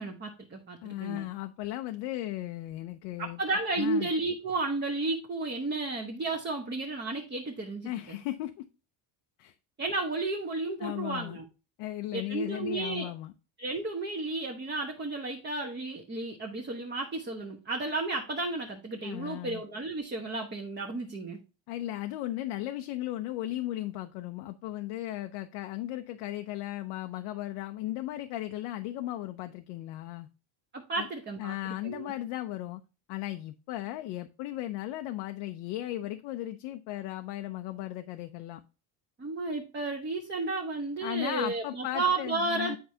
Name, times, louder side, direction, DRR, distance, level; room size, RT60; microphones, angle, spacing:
voice 1, 0.0-1.3 3.2-8.2 9.8-11.4 12.1-13.1 13.6-21.4 30.7-32.1 39.2-42.8, right 2 dB, 25° right, 0.9 m, -33 dB
voice 2, 0.8-4.1 7.9-8.7 9.4-9.5 10.8-11.4 11.8-13.3 19.0-19.6 21.7-30.3 31.0-31.1 31.4-32.8 33.1-38.6 41.0-42.8, left 15 dB, 80° left, 0.6 m, -36 dB
8.0 x 4.7 x 2.7 m
cardioid pair, 110°, 47 cm